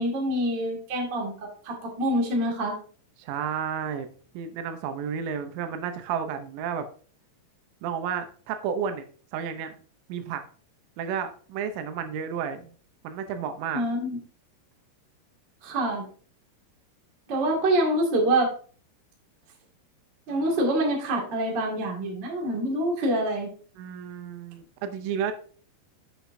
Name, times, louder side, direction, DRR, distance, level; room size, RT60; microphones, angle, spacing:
voice 1, 0.0-1.3 1.6-2.7 13.7-14.2 15.6-16.0 17.3-18.5 20.3-23.5, right 1 dB, 55° right, -1 dB, 1.2 m, -26 dB
voice 2, 3.2-4.1 4.3-6.9 7.8-9.1 9.3-9.8 10.1-10.4 11.0-12.7 13.0-13.8 23.8-25.3, right 7 dB, 80° right, 8 dB, 3.2 m, -31 dB
8.1 x 8.1 x 2.6 m, 0.42 s
omnidirectional pair, 5.8 m